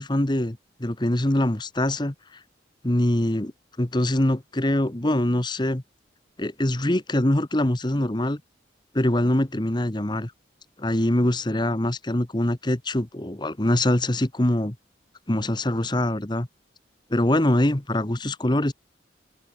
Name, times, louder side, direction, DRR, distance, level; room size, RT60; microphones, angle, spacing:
voice 1, 0.0-2.1 2.8-3.5 3.8-5.8 6.4-8.4 8.9-10.3 10.8-14.8 15.3-16.5 17.1-18.7, left 1 dB, 25° left, 1.2 m, -23 dB
open air
head